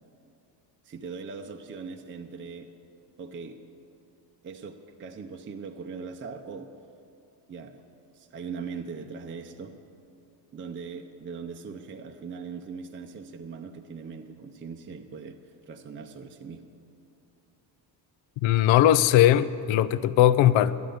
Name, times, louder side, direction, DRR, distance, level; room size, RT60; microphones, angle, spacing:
voice 1, 0.8-2.7 3.2-3.6 4.4-6.7 7.5-7.8 8.1-9.8 10.5-15.4 15.7-16.7, right 5 dB, 25° right, 4 dB, 0.6 m, -40 dB
voice 2, 18.4-20.8, left 12 dB, 75° left, 15 dB, 0.6 m, -19 dB
12.0 x 10.5 x 7.9 m, 2.6 s
cardioid pair, 130°, 46 cm